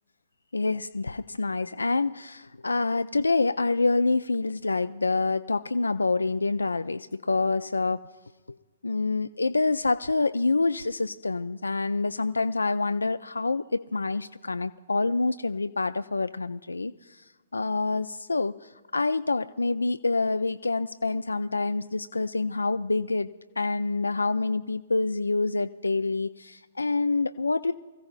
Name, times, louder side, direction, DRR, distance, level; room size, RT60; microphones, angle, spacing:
voice 1, 0.5-8.0 8.8-17.2 17.5-23.3 23.6-27.7, left 3 dB, 80° left, 11 dB, 0.3 m, -27 dB
25.0 x 15.5 x 2.4 m, 1.3 s
figure-of-eight pair, 120°, 0 cm